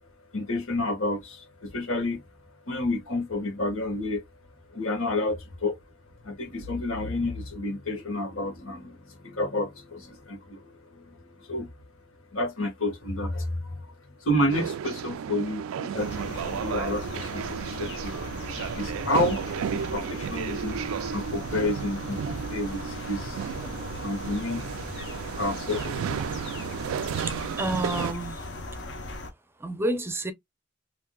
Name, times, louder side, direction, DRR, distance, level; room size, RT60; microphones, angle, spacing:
voice 1, 0.3-2.2 2.7-4.2 4.7-5.8 6.2-11.7 12.3-13.9 14.2-18.2 18.7-19.4 19.7-20.8 21.1-23.5 24.0-24.7 25.4-26.4, left 1 dB, 85° left, 1.4 m, -30 dB
sound 1, 14.5-28.1, right 8 dB, 85° right, 0.3 m, -33 dB
sound 2, 16.0-29.3, left 2 dB, 60° left, 0.8 m, -38 dB
voice 2, 27.3-28.5 29.6-30.3, right 1 dB, 10° right, 0.5 m, -30 dB
3.5 x 2.6 x 2.2 m
head